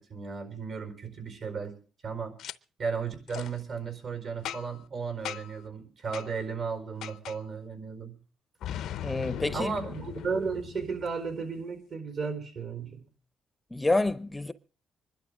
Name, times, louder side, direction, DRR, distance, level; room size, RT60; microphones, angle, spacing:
voice 1, 0.0-1.7 2.0-2.4 2.8-8.1 9.5-13.1, right 5 dB, 60° right, 4.5 m, -34 dB
Boom, 2.4-2.5 3.3-3.5 4.4-4.8 5.2-5.6 6.1-6.3 7.0-7.4 8.6-11.3, left 11 dB, 80° left, 0.6 m, -38 dB
voice 2, 9.0-9.7 13.7-14.5, left 2 dB, 15° left, 0.7 m, -28 dB
25.0 x 11.5 x 3.7 m
cardioid pair, 90°, 0 cm